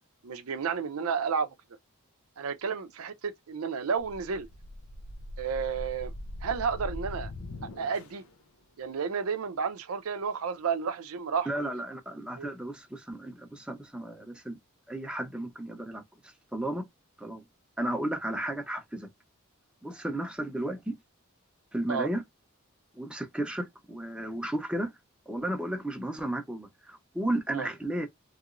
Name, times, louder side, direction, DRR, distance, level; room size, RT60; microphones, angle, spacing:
voice 1, 0.2-1.5 2.4-4.5 5.4-6.1 6.4-7.3 7.6-8.2 8.8-11.8 12.4-12.5 21.9-22.1 27.5-27.7, right 6 dB, 90° right, 0.5 m, -31 dB
sound 1, 4.0-8.3, left 1 dB, 85° left, 0.6 m, -41 dB
voice 2, 11.5-14.6 14.9-16.9 17.2-17.4 17.8-19.1 19.8-21.0 21.7-22.2 22.9-24.9 25.3-28.1, right 1 dB, 5° right, 0.7 m, -34 dB
3.0 x 2.9 x 2.5 m
head